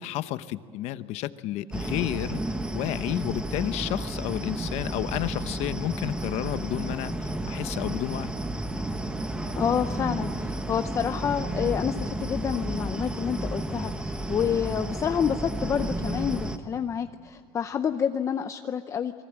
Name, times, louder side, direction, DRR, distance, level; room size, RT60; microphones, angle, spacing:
voice 1, 0.0-8.3, left 14 dB, 55° left, 13 dB, 1.0 m, -31 dB
sound 1, 1.7-16.6, right 1 dB, 5° right, 1.1 m, -32 dB
voice 2, 9.6-19.1, left 8 dB, 20° left, 8 dB, 0.6 m, -28 dB
29.0 x 23.0 x 8.8 m, 2.2 s
cardioid pair, 165°, 13 cm